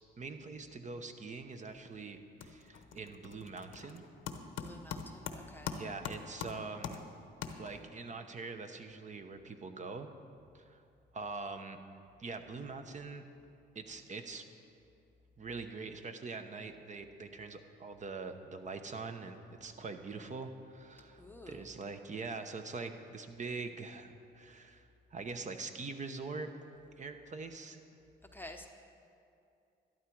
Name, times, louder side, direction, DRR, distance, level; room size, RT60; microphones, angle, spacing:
voice 1, 0.2-4.0 5.7-7.0 7.6-10.1 10.5-10.8 11.1-11.8 12.2-13.2 13.7-14.4 15.4-26.5 27.0-27.8, right 4 dB, 40° right, 7 dB, 0.9 m, -43 dB
sound 1, 1.5-1.9 2.2-8.0, left 7 dB, 80° left, 0.8 m, -44 dB
voice 2, 4.6-5.8 21.2-21.7 28.3-28.7, left 1 dB, 10° left, 3 dB, 0.8 m, -50 dB
12.5 x 11.5 x 4.6 m, 2.5 s
cardioid pair, 90°, 20 cm